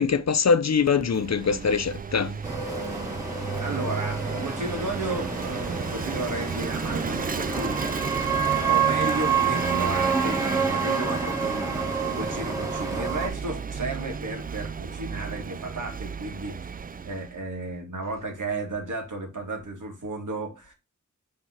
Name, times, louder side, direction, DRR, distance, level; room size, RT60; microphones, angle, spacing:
voice 1, 0.0-2.4, left 5 dB, 55° left, 0.7 m, -23 dB
Vehicle / Engine, 0.8-17.4, right 5 dB, 30° right, 0.4 m, -33 dB
sound 1, 2.4-13.3, right 5 dB, 10° right, 1.8 m, -28 dB
voice 2, 3.6-7.8 8.1-16.8 17.0-20.7, right 2 dB, 75° right, 2.2 m, -34 dB
5.7 x 3.8 x 5.7 m
wide cardioid pair, 75°, 31 cm